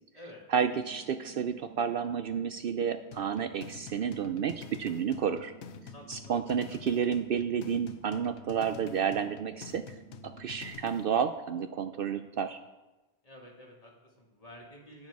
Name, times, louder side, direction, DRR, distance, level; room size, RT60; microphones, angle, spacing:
voice 1, 0.5-5.5 6.1-9.8 10.4-12.6, right 7 dB, 65° right, 9 dB, 0.7 m, -31 dB
sound 1, 0.7-10.7, right 9 dB, 85° right, 1.5 m, -53 dB
sound 2, 3.1-11.1, left 8 dB, 90° left, 1.0 m, -48 dB
voice 2, 5.9-6.4 6.7-6.8 13.2-15.1, left 1 dB, 35° left, -1 dB, 2.1 m, -50 dB
10.5 x 9.5 x 4.7 m, 1.1 s
omnidirectional pair, 1.1 m